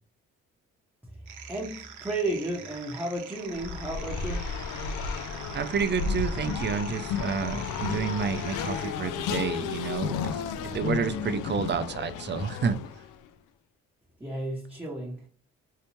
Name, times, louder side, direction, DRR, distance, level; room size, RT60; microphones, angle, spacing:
sound 1, 1.3-8.9, right 8 dB, 80° right, 0.7 m, -44 dB
voice 1, 1.5-4.5 14.2-15.3, right 1 dB, 5° right, 0.8 m, -33 dB
Race car auto racing, 3.5-13.2, left 6 dB, 85° left, 0.5 m, -33 dB
voice 2, 5.5-12.7, right 6 dB, 35° right, 0.5 m, -30 dB
3.3 x 2.8 x 3.0 m
cardioid pair, 90°, 30 cm